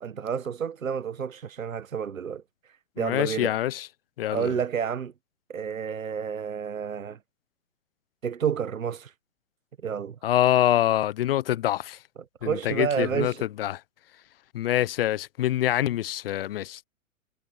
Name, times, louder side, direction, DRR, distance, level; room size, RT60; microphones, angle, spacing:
voice 1, 0.0-2.4 3.0-3.5 4.3-5.1 5.5-7.2 8.2-9.1 9.8-10.2 12.4-13.4, right 7 dB, 70° right, 1.4 m, -30 dB
voice 2, 3.0-3.9 4.2-4.6 10.2-12.0 12.4-13.8 14.5-16.8, left 13 dB, 40° left, 1.2 m, -25 dB
figure-of-eight pair, 120°, 42 cm